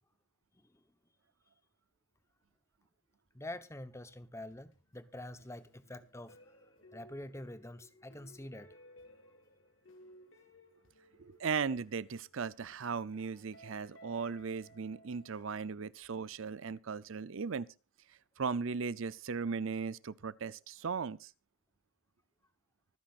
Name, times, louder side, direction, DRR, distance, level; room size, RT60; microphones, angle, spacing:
voice 1, 3.3-6.4 6.9-8.7, left 1 dB, 15° left, 0.9 m, -46 dB
sound 1, 4.5-15.4, equal, 60° left, 3.8 m, -60 dB
voice 2, 11.2-17.7 18.4-21.3, right 5 dB, 65° right, 0.5 m, -37 dB
25.0 x 10.0 x 2.5 m
head